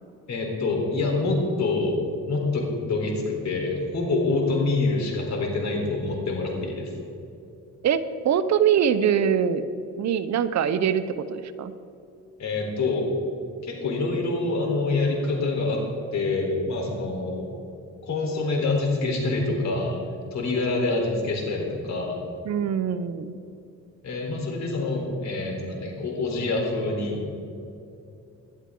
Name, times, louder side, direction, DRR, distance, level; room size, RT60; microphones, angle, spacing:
voice 1, 0.3-2.0 2.3-6.9 12.4-13.1 13.6-15.8 16.1-17.4 18.0-20.0 20.3-22.2 24.0-27.2, left 3 dB, 65° left, 0 dB, 3.8 m, -26 dB
voice 2, 7.8-9.6 10.0-11.0 11.3-11.7 22.5-23.4, right 8 dB, 65° right, 12 dB, 0.9 m, -23 dB
19.0 x 11.5 x 3.8 m, 2.7 s
cardioid pair, 90°, 30 cm